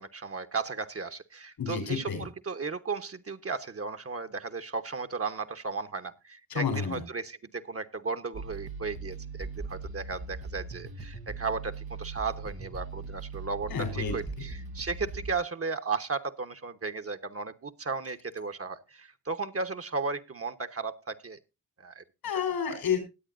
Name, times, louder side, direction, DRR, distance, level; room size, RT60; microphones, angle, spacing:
voice 1, 0.0-21.4 21.8-22.0 22.7-22.8, right 4 dB, 40° right, 9 dB, 1.1 m, -35 dB
voice 2, 1.6-2.3 6.5-7.0 13.7-14.5 22.2-23.0, left 7 dB, 85° left, 7 dB, 4.0 m, -30 dB
sound 1, 8.3-15.4, right 4 dB, 80° right, 1.3 m, -40 dB
20.0 x 8.3 x 2.6 m, 0.27 s
cardioid pair, 50°, 36 cm